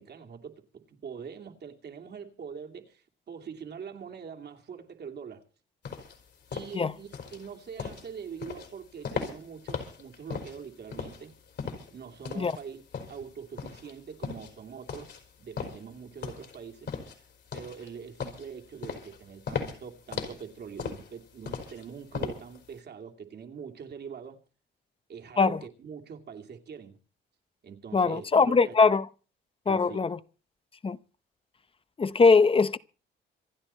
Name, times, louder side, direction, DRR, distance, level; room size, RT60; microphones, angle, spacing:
voice 1, 0.0-5.5 6.5-11.4 11.9-12.8 13.1-15.1 15.4-16.9 17.5-24.4 25.1-27.0 27.6-28.7 29.7-30.0, right 6 dB, 55° right, 2.5 m, -43 dB
sound 1, 5.8-22.7, left 6 dB, 60° left, 4.7 m, -38 dB
voice 2, 27.9-29.0 29.7-30.2 30.8-31.0 32.0-32.8, left 4 dB, 25° left, 0.8 m, -21 dB
27.0 x 9.8 x 4.3 m
cardioid pair, 90°, 20 cm